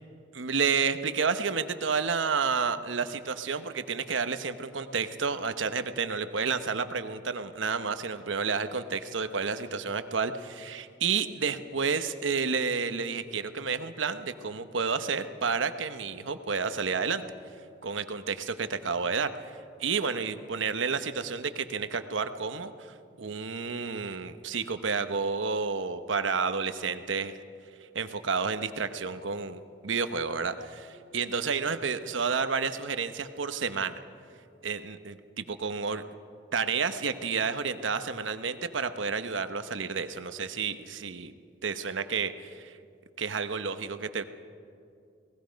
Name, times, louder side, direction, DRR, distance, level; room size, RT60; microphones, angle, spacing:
voice 1, 0.3-17.2 17.8-22.7 23.2-27.3 27.9-34.0 34.6-36.0 36.5-41.3 41.6-42.7 43.2-44.3, right 5 dB, 75° right, 10 dB, 1.0 m, -30 dB
29.0 x 19.0 x 5.2 m, 2.5 s
head